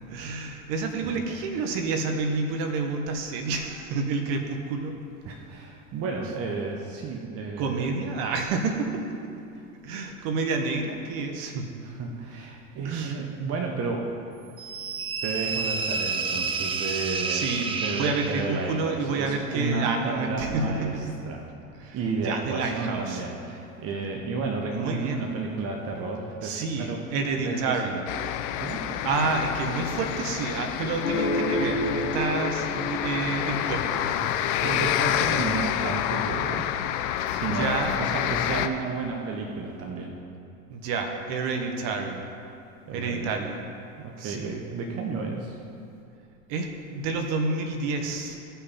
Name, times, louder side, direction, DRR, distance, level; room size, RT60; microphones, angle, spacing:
voice 1, 0.1-5.0 7.6-9.2 9.8-11.7 12.8-13.2 17.3-17.7 17.9-21.0 21.8-22.0 22.2-23.2 24.7-25.3 26.4-28.0 29.0-34.3 35.1-35.3 37.5-38.1 40.7-42.3 42.9-43.6 44.2-44.5 46.5-48.4, right 4 dB, 55° right, 4 dB, 1.5 m, -29 dB
voice 2, 1.0-1.4 5.2-7.9 9.5-9.6 11.8-14.1 15.2-21.5 21.9-27.0 27.3-28.0 28.6-28.8 34.6-36.7 37.3-40.2 42.9-43.3 44.0-45.6, right 4 dB, 35° right, 1 dB, 1.1 m, -32 dB
sound 1, 14.6-18.7, right 5 dB, 15° right, 0.4 m, -30 dB
sound 2, 28.1-38.7, left 11 dB, 45° left, 0.7 m, -28 dB
sound 3, 31.0-34.4, left 2 dB, 80° left, 1.6 m, -30 dB
16.0 x 5.8 x 4.3 m, 2.6 s
hypercardioid pair, 105°, 43 cm